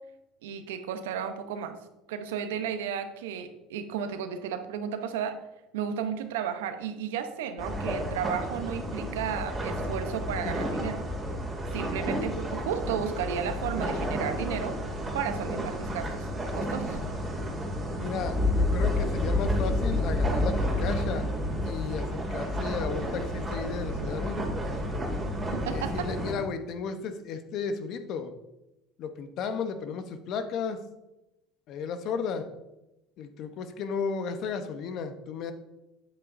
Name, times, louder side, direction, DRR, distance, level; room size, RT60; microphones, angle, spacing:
voice 1, 0.4-1.7 2.1-5.3 5.7-11.0 11.7-14.8 15.1-16.3 16.5-17.0 25.5-26.1, right 8 dB, 85° right, 8 dB, 0.8 m, -33 dB
sound 1, 7.6-26.3, left 1 dB, 20° right, 2.6 m, -30 dB
voice 2, 18.0-21.3 21.6-24.6 25.7-28.3 29.0-30.9 31.7-32.5 33.2-35.5, left 6 dB, 60° left, 9 dB, 0.9 m, -34 dB
9.0 x 7.8 x 2.7 m, 0.95 s
supercardioid pair, 90°, 0 cm